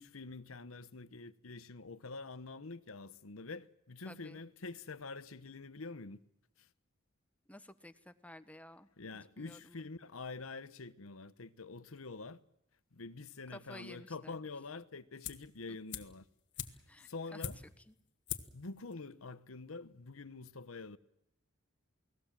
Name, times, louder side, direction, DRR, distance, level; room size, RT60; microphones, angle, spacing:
voice 1, 0.0-6.2 9.0-12.4 12.9-16.3 17.1-17.6 18.5-21.0, left 3 dB, 85° left, 1.1 m, -46 dB
voice 2, 4.0-4.4 7.5-8.9 9.4-9.9 13.5-14.4 16.9-17.5 17.9-18.0, left 1 dB, 5° left, 1.2 m, -53 dB
sound 1, 15.2-15.6 15.9-17.9 18.3-18.6 18.9-19.0, left 8 dB, 60° left, 1.6 m, -43 dB
29.0 x 19.5 x 7.5 m
head